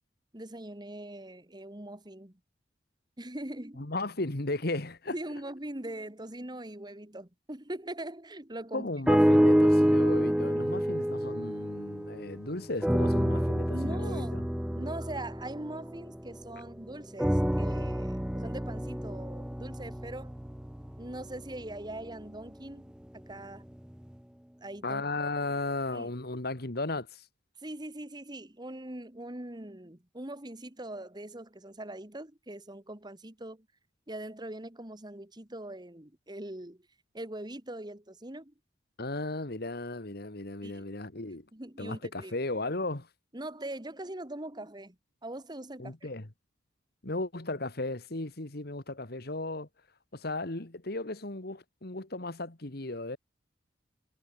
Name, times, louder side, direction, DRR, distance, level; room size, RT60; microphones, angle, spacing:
voice 1, 0.3-2.4 3.2-3.9 5.1-8.9 13.7-14.4 14.7-20.3 21.0-23.7 24.6-25.0 25.9-26.1 27.6-33.7 34.1-36.8 37.1-38.5 40.6-40.9 41.5-42.3 43.3-45.0 45.2-46.1, right 1 dB, 25° right, 2.0 m, -41 dB
voice 2, 3.8-5.1 8.7-14.4 24.8-27.2 39.0-41.5 41.8-43.1 45.8-46.3 47.0-49.7 50.1-53.2, left 2 dB, 55° left, 2.0 m, -35 dB
sound 1, 9.1-12.4 12.8-16.6 17.2-21.4 22.1-22.2, equal, 5° right, 0.6 m, -27 dB
head